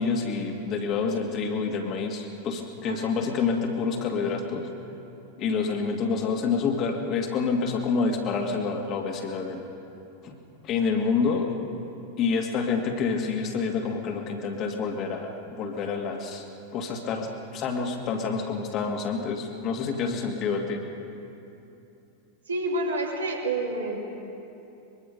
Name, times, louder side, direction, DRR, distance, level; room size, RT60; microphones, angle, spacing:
voice 1, 0.0-4.7 5.4-9.6 10.2-10.4 10.6-11.5 12.2-16.5 16.7-17.3 17.5-20.8, left 5 dB, 35° left, 2 dB, 2.2 m, -28 dB
voice 2, 2.8-3.3 22.5-24.0, right 2 dB, 70° right, 0 dB, 3.0 m, -29 dB
24.0 x 22.5 x 5.4 m, 2.8 s
figure-of-eight pair, 90°, 0 cm